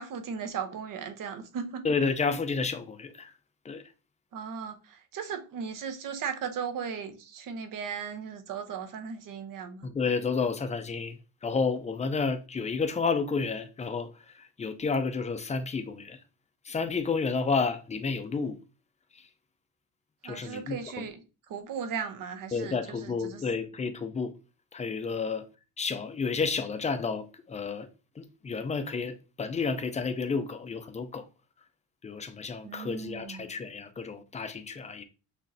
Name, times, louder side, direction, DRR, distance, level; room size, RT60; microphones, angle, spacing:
voice 1, 0.0-1.8 4.3-9.9 20.2-21.2 21.5-23.4 32.6-33.5, right 6 dB, 65° right, 0.9 m, -37 dB
voice 2, 1.8-3.3 3.7-3.8 9.8-11.2 11.4-14.1 14.4-16.2 16.7-18.6 20.2-20.8 22.5-24.3 24.7-25.4 25.8-27.9 28.2-31.2 32.0-35.0, left 4 dB, 20° left, 0.4 m, -31 dB
6.2 x 3.1 x 2.7 m
cardioid pair, 160°, 36 cm